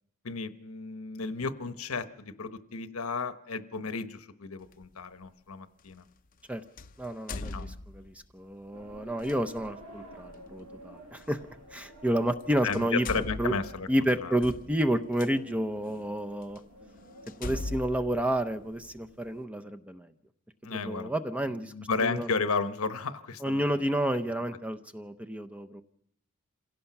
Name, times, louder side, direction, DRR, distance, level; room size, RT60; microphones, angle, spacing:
voice 1, 0.2-6.0 7.3-7.7 12.6-13.9 14.2-14.3 20.6-21.1 21.6-23.8, left 4 dB, 70° left, 10 dB, 1.0 m, -33 dB
sound 1, 4.7-4.9 6.8-8.3 9.2-9.4 11.2-11.3 12.3-12.4 12.7-15.3 16.0-16.1 16.6-16.7 17.3-19.1, left 2 dB, 40° left, 0.7 m, -39 dB
voice 2, 7.0-11.4 11.7-13.5 13.9-16.6 17.4-20.1 20.7-21.7 22.0-22.3 23.4-25.8, right 1 dB, 5° right, 8 dB, 0.7 m, -30 dB
sound 2, 8.7-19.4, right 1 dB, 90° right, 5.5 m, -52 dB
27.0 x 17.0 x 5.9 m, 0.79 s
head